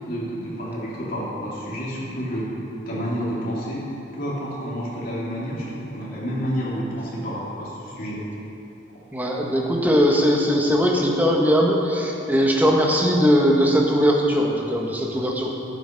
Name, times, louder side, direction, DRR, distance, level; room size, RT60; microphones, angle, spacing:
voice 1, 0.0-2.5 2.9-8.2, equal, 45° left, -6 dB, 3.0 m, -29 dB
voice 2, 9.1-15.5, equal, 10° right, -1 dB, 1.3 m, -20 dB
12.0 x 9.2 x 5.3 m, 2.8 s
head